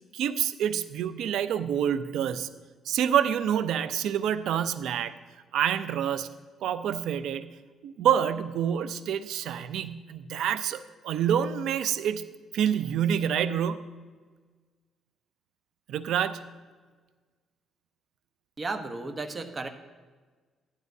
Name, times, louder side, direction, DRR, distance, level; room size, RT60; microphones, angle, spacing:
voice 1, 0.1-2.5 2.9-5.2 5.5-6.3 6.6-12.3 12.5-14.0 15.9-16.5, right 9 dB, 80° right, 13 dB, 0.5 m, -27 dB
voice 2, 18.6-19.7, right 3 dB, 30° right, 5 dB, 1.0 m, -34 dB
15.0 x 11.5 x 2.7 m, 1.4 s
cardioid pair, 90°, 0 cm